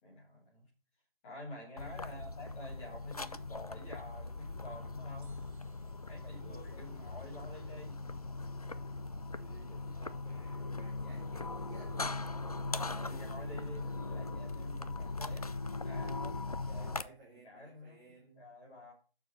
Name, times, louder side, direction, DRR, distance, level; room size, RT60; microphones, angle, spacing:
voice 1, 0.0-0.7 1.2-5.3 6.1-8.0 12.8-15.5 15.8-16.4 16.8-16.9 17.4-18.1 18.3-18.9, left 1 dB, 10° left, -2 dB, 1.5 m, -49 dB
sound 1, 1.8-17.0, left 3 dB, 40° left, 0.4 m, -40 dB
voice 2, 1.9-2.3 6.2-7.2 9.4-12.5 16.4-18.5, right 2 dB, 5° right, -8 dB, 0.8 m, -56 dB
sound 2, 5.2-8.3 8.5-8.6, right 3 dB, 20° right, 2.8 m, -73 dB
6.8 x 6.1 x 4.2 m, 0.37 s
figure-of-eight pair, 160°, 30 cm